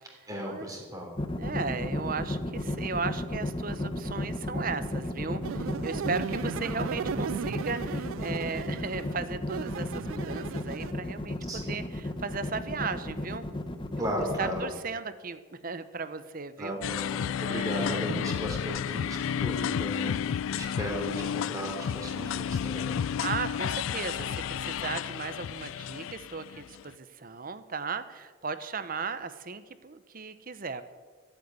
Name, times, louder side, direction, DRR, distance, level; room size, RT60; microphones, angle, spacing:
voice 1, 0.3-1.2 11.5-11.9 14.0-14.7 16.6-23.0, equal, 20° right, 0 dB, 3.4 m, -36 dB
sound 1, 1.2-14.6, left 1 dB, 25° left, 1.0 m, -33 dB
voice 2, 1.4-13.5 13.9-16.8 17.4-18.1 23.0-30.8, right 4 dB, 45° right, 12 dB, 0.9 m, -36 dB
sound 2, 5.4-10.9, right 7 dB, 80° right, 0.3 m, -36 dB
sound 3, 16.8-26.9, left 8 dB, 80° left, 0.3 m, -32 dB
15.0 x 8.3 x 9.5 m, 1.4 s
head